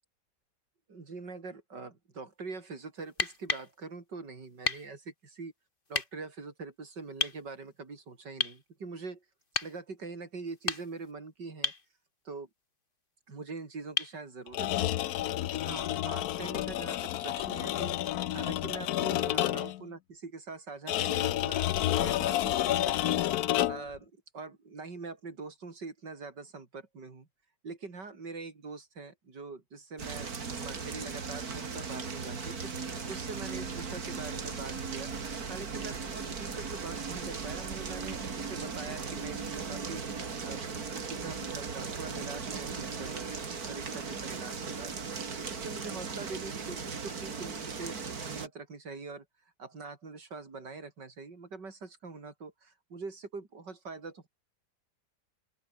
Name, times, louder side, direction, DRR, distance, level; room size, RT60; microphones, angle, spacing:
voice 1, 0.9-5.5 5.9-9.2 9.6-11.7 12.2-12.5 13.3-15.1 15.6-18.0 18.3-23.2 23.7-27.3 27.6-35.1 35.5-40.6 41.1-43.3 43.7-45.2 45.5-49.3 49.6-54.3, right 4 dB, 80° right, 4.2 m, -43 dB
sound 1, 3.1-3.7 4.6-4.9 5.9-6.1 7.2-7.4 8.4-8.6 9.5-9.8 10.5-11.1 11.6-11.9 14.0-14.2 16.0-16.1, left 3 dB, 30° left, 2.4 m, -32 dB
sound 2, 14.5-19.8 20.9-24.0, left 13 dB, 70° left, 1.1 m, -30 dB
sound 3, 30.0-48.5, right 5 dB, 60° right, 2.8 m, -37 dB
open air
omnidirectional pair, 1.8 m